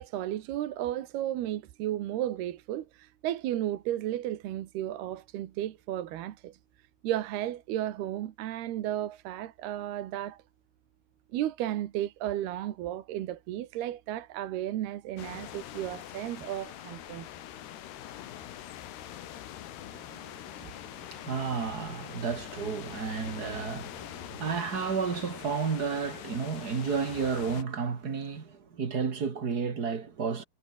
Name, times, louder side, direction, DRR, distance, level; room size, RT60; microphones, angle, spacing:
voice 1, 0.0-6.6 7.0-10.4 11.3-17.3, right 13 dB, 80° right, 3.4 m, -34 dB
sound 1, 15.2-27.6, left 12 dB, 85° left, 3.9 m, -43 dB
voice 2, 19.9-30.4, right 5 dB, 35° right, 1.7 m, -32 dB
omnidirectional pair, 4.6 m